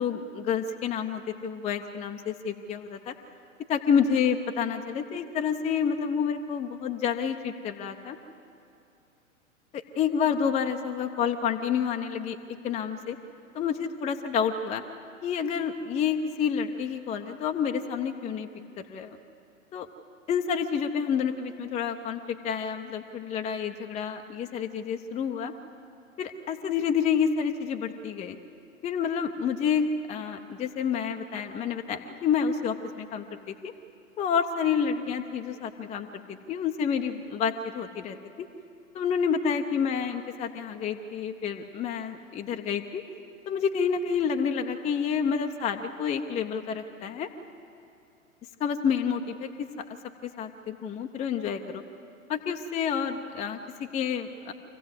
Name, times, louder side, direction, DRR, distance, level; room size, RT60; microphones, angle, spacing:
voice 1, 0.0-3.1 3.7-8.2 9.7-12.4 12.6-13.2 13.5-14.8 15.2-18.5 18.8-19.2 19.7-19.9 20.3-25.5 26.2-28.4 28.8-33.7 34.2-38.5 38.9-43.0 43.5-47.3 48.6-49.5 50.4-51.8 52.3-54.5, left 7 dB, 15° left, 5 dB, 0.8 m, -29 dB
26.0 x 16.0 x 8.1 m, 2.8 s
figure-of-eight pair, 105°, 41 cm